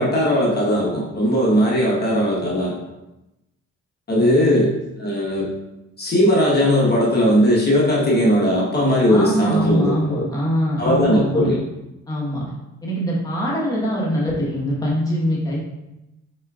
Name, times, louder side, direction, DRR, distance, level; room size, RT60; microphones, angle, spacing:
voice 1, 0.0-2.7 4.1-4.7 5.0-5.5 6.0-10.2 10.8-11.6, equal, 35° left, -5 dB, 1.2 m, -18 dB
voice 2, 4.1-4.6 9.1-11.5 12.1-12.5 12.8-15.6, equal, 10° left, -5 dB, 1.2 m, -23 dB
4.4 x 4.3 x 2.4 m, 0.94 s
cardioid pair, 90°, 30 cm